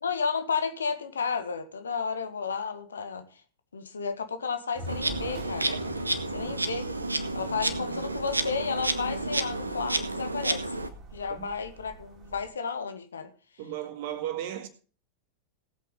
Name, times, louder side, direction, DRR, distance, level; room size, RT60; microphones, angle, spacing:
voice 1, 0.0-3.3 3.7-5.7 6.3-6.9 7.4-10.9 11.1-13.3, left 5 dB, 70° left, 1.6 m, -32 dB
sound 1, 4.8-12.5, equal, 30° right, 3.0 m, -45 dB
Insect, 4.9-10.9, right 2 dB, 80° right, 1.1 m, -30 dB
voice 2, 13.6-14.7, right 12 dB, 50° right, 1.9 m, -35 dB
18.5 x 8.4 x 3.8 m
figure-of-eight pair, 90°, 0 cm